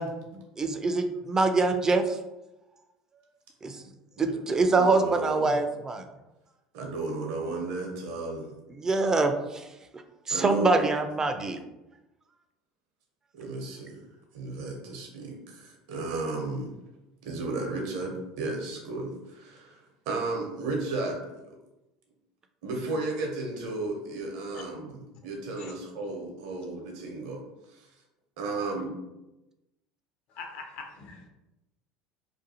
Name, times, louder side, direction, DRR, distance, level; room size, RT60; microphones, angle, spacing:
voice 1, 0.0-2.2 3.6-3.8 4.2-6.0 8.8-9.7 10.3-11.6, right 3 dB, 25° right, 7 dB, 0.3 m, -25 dB
voice 2, 4.7-5.6 6.7-8.5 10.3-10.8 13.3-14.0 14.3-16.7 17.2-21.6 22.6-27.9 28.4-28.9, right 3 dB, 70° right, 1 dB, 0.7 m, -34 dB
voice 3, 30.3-31.3, left 4 dB, 60° left, 3 dB, 0.6 m, -42 dB
2.5 x 2.3 x 2.7 m, 0.97 s
hypercardioid pair, 75°, 2 cm